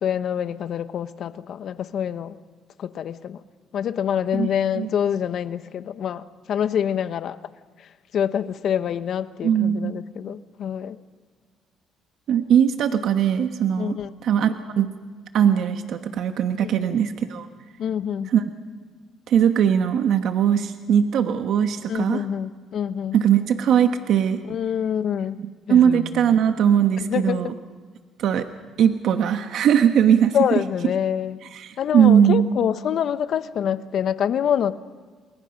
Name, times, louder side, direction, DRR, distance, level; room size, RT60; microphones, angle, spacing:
voice 1, 0.0-2.4 2.8-3.4 3.7-7.4 7.8-11.0 13.8-14.1 16.6-17.0 17.8-18.3 21.9-23.2 24.5-25.4 25.7-26.4 27.0-27.5 30.3-31.4 31.8-34.7, left 9 dB, 60° left, 12 dB, 1.1 m, -26 dB
voice 2, 9.4-10.0 12.3-14.0 14.2-14.9 15.3-17.5 18.3-18.4 19.3-22.2 23.1-24.4 25.4-27.5 28.2-28.5 28.8-30.4 31.5-32.5, right 9 dB, 65° right, 7 dB, 1.2 m, -20 dB
28.5 x 21.5 x 5.3 m, 1.6 s
cardioid pair, 105°, 0 cm